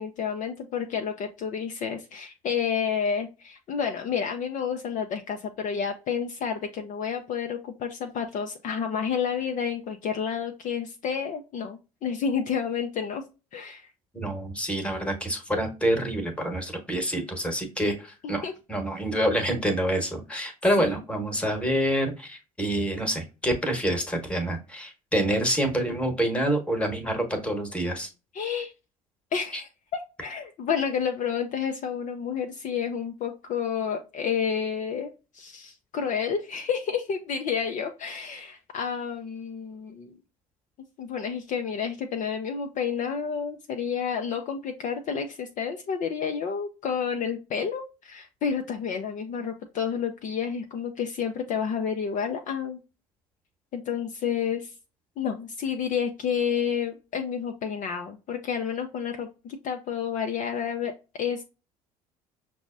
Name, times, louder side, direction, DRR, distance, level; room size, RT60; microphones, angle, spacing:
voice 1, 0.0-13.2 13.5-13.9 18.2-18.5 20.8-20.9 28.3-28.7 29.3-40.2 41.0-52.8 53.7-54.7 55.2-61.4, left 7 dB, 45° left, 4 dB, 0.5 m, -30 dB
voice 2, 14.1-28.1 29.5-29.6, right 1 dB, 5° left, 4 dB, 1.1 m, -27 dB
5.9 x 2.0 x 2.4 m, 0.30 s
hypercardioid pair, 60°, 19 cm